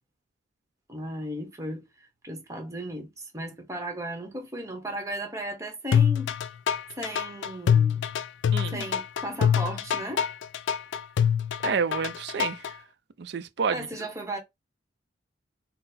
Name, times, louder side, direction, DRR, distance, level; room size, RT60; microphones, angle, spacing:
voice 1, 0.9-1.8 2.2-6.3 7.0-8.0 8.7-10.2 13.7-14.4, right 1 dB, 15° right, 0.9 m, -35 dB
sound 1, 5.9-12.7, left 8 dB, 75° left, 0.3 m, -24 dB
voice 2, 8.5-8.8 11.6-12.7 13.2-13.9, right 5 dB, 60° right, 0.4 m, -29 dB
3.9 x 2.0 x 4.0 m
head